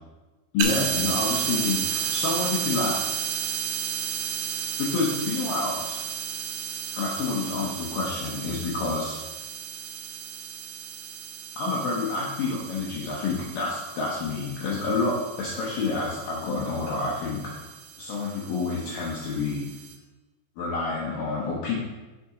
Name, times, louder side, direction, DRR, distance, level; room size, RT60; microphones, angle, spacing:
voice 1, 0.5-3.1 4.8-6.0 6.9-9.2 11.6-17.7 18.0-19.6 20.6-21.8, left 4 dB, 75° left, -4 dB, 2.0 m, -28 dB
sound 1, 0.6-19.9, right 8 dB, 80° right, 2.4 m, -33 dB
6.5 x 5.8 x 3.7 m, 1.2 s
omnidirectional pair, 5.0 m